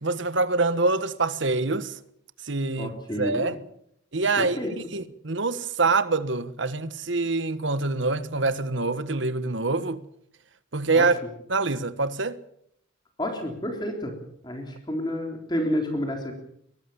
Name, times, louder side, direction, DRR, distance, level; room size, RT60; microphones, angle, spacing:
voice 1, 0.0-2.0 2.4-3.6 4.1-10.0 10.7-11.1 11.5-12.4, right 3 dB, 75° right, 1.4 m, -25 dB
voice 2, 2.8-3.5 4.4-4.7 10.9-11.1 13.2-14.1 14.4-16.3, equal, 20° left, 3.7 m, -29 dB
23.5 x 19.0 x 7.1 m
head